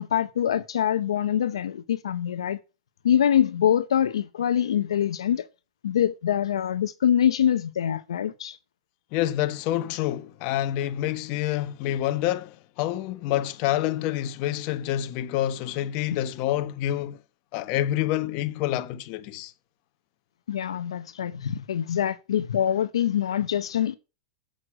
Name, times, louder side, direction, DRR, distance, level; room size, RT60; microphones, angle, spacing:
voice 1, 0.0-2.6 3.0-5.5 5.8-8.6 20.5-23.9, left 9 dB, 85° left, 0.7 m, -24 dB
voice 2, 9.1-17.2 17.5-19.5, left 13 dB, 50° left, 1.0 m, -27 dB
7.8 x 6.4 x 7.6 m
hypercardioid pair, 125°, 3 cm